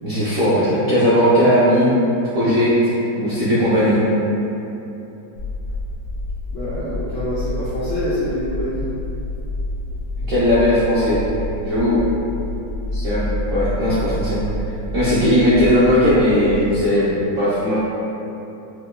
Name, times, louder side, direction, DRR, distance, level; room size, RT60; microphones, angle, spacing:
voice 1, 0.0-1.9 2.3-2.7 3.2-4.0 10.3-11.2 11.6-12.0 12.9-14.4 14.9-17.8, equal, 70° right, -12 dB, 0.7 m, -17 dB
sound 1, 5.4-16.6, left 1 dB, 90° left, 1.5 m, -28 dB
voice 2, 6.5-8.9, left 1 dB, 70° left, -12 dB, 0.7 m, -26 dB
4.6 x 2.2 x 2.2 m, 2.9 s
omnidirectional pair, 2.0 m